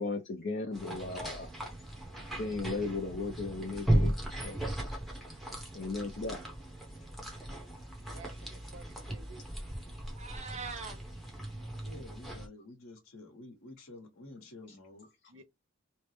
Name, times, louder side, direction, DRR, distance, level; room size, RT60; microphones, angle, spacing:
voice 1, 0.0-1.5 2.4-4.1 4.4-4.6 5.7-6.4, left 3 dB, 55° left, 0.5 m, -36 dB
sound 1, 0.7-12.5, right 1 dB, ahead, 0.8 m, -36 dB
voice 2, 2.5-2.8 6.1-6.2 8.1-9.5 15.3-15.4, right 3 dB, 70° right, 0.6 m, -54 dB
Meow, 10.0-11.0, right 5 dB, 35° right, 0.8 m, -42 dB
voice 3, 11.8-15.4, left 2 dB, 90° left, 1.0 m, -50 dB
3.2 x 2.0 x 3.1 m
head